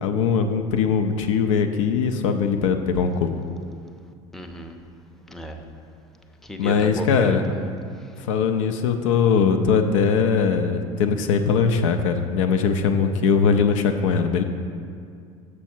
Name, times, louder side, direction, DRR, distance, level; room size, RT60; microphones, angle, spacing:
voice 1, 0.0-3.3 6.6-7.5 8.3-14.4, left 6 dB, 65° left, 6 dB, 0.5 m, -21 dB
voice 2, 4.3-4.8 5.3-5.6 6.5-7.6, equal, ahead, 3 dB, 0.6 m, -34 dB
6.9 x 6.1 x 4.4 m, 2.3 s
figure-of-eight pair, 70°, 17 cm